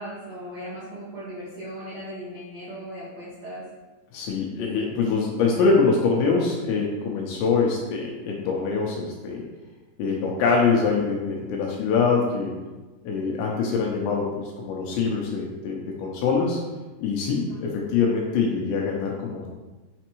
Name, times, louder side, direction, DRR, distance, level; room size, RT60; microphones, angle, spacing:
voice 1, 0.0-3.6 17.5-17.6, equal, 75° right, -10 dB, 1.5 m, -37 dB
voice 2, 4.1-9.4 10.0-12.5 13.0-16.6 17.0-19.5, left 4 dB, 80° left, -1 dB, 2.8 m, -24 dB
7.0 x 6.3 x 3.0 m, 1.2 s
omnidirectional pair, 5.7 m